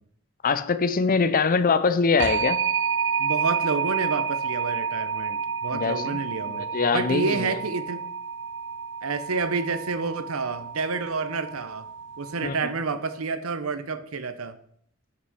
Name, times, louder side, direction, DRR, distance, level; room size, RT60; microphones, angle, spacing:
voice 1, 0.4-2.6 5.7-6.2 6.5-7.6 12.4-12.7, left 5 dB, 40° left, 0.6 m, -23 dB
sound 1, 2.2-12.8, right 6 dB, 60° right, 0.5 m, -30 dB
voice 2, 3.2-6.7 6.9-8.0 9.0-11.9 12.2-14.6, right 4 dB, 85° right, 0.8 m, -29 dB
6.1 x 6.0 x 6.1 m
head